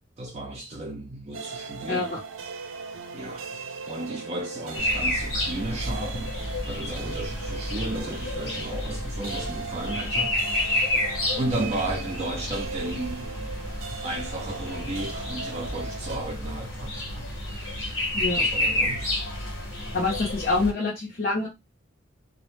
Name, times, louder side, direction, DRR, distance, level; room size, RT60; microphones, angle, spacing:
voice 1, 0.2-2.2 3.1-3.5 3.9-6.4 6.6-10.7 11.4-13.5 14.0-17.3 18.3-19.1, right 1 dB, 35° right, 0.4 m, -34 dB
sound 1, 1.3-16.2, right 4 dB, 85° right, 0.5 m, -39 dB
voice 2, 1.9-2.2 18.1-18.4 19.9-21.5, left 3 dB, 50° left, 0.6 m, -26 dB
sound 2, 4.7-20.7, left 1 dB, 75° left, 1.0 m, -30 dB
2.1 x 2.1 x 3.0 m
head